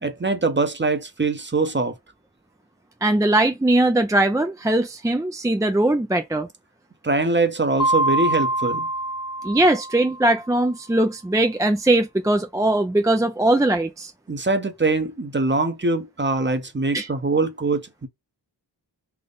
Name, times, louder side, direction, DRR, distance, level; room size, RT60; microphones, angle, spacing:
voice 1, 0.0-2.0 7.0-8.9 14.3-18.1, right 3 dB, 25° right, 0.7 m, -23 dB
voice 2, 3.0-6.5 9.4-14.1 16.9-17.1, right 1 dB, 10° right, 0.3 m, -20 dB
Mallet percussion, 7.8-10.4, right 1 dB, 50° left, 0.6 m, -25 dB
3.5 x 2.1 x 3.9 m
wide cardioid pair, 55°, 43 cm